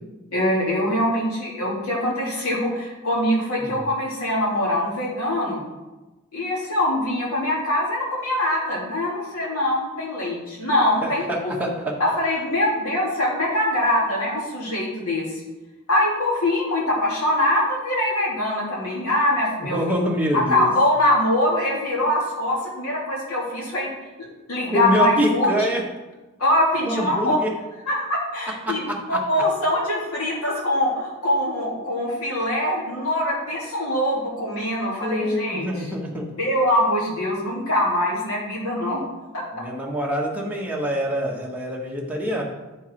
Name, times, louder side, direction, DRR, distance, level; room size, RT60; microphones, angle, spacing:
voice 1, 0.3-5.6 6.3-11.5 12.0-15.4 15.9-19.8 20.3-23.9 24.5-25.5 26.4-27.4 27.9-35.7 36.4-39.0 39.3-39.4, left 1 dB, 80° left, -4 dB, 2.7 m, -23 dB
voice 2, 11.0-12.0 19.6-20.7 24.7-25.8 26.8-27.5 28.7-29.2 35.0-36.3 39.5-42.4, equal, 10° right, -2 dB, 1.3 m, -25 dB
9.7 x 4.7 x 4.5 m, 1.1 s
head